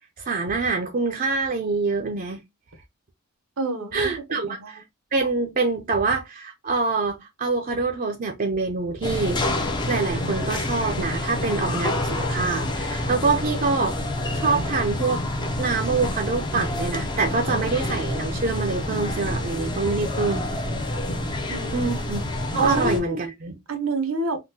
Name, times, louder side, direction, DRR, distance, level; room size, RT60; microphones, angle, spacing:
voice 1, 0.2-2.4 3.9-4.8 5.1-9.4 9.9-13.9 14.3-15.2 15.6-20.5 21.7-22.2 22.5-23.5, right 4 dB, 40° right, 0.5 m, -25 dB
voice 2, 3.6-4.7 21.5-21.9 22.6-23.2 23.7-24.4, right 2 dB, 75° right, 0.7 m, -27 dB
sound 1, 9.0-23.0, left 1 dB, 20° left, 0.5 m, -28 dB
3.6 x 2.2 x 2.7 m
head